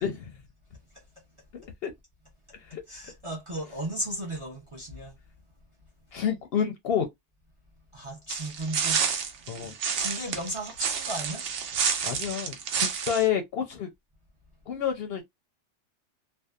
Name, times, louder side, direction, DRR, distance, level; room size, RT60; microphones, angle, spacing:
voice 1, 0.0-0.3 1.5-1.9 2.6-2.8 6.1-7.1 9.5-9.8 12.0-13.9 14.7-15.2, left 8 dB, 65° left, 0.7 m, -29 dB
voice 2, 2.9-5.1 7.9-9.0 9.5-9.6 10.0-11.5, right 1 dB, 30° right, 0.6 m, -35 dB
sound 1, 8.3-13.3, right 7 dB, 70° right, 0.9 m, -29 dB
2.6 x 2.2 x 2.3 m
omnidirectional pair, 1.3 m